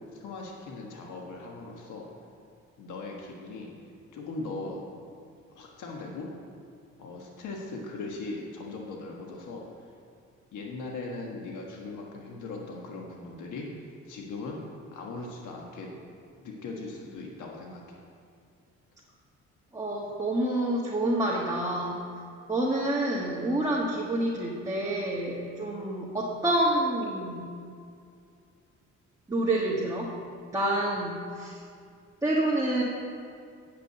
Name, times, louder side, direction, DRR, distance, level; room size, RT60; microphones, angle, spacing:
voice 1, 0.1-2.1 2.8-3.7 4.1-4.8 5.5-6.3 7.0-9.6 10.5-14.6 14.9-15.9 16.4-18.0, left 3 dB, 80° left, 0 dB, 1.3 m, -39 dB
voice 2, 19.7-22.0 22.5-27.5 29.3-30.1 30.5-31.6 32.2-32.8, right 1 dB, 10° right, -5 dB, 1.4 m, -28 dB
8.4 x 5.8 x 7.8 m, 2.3 s
cardioid pair, 90°, 30 cm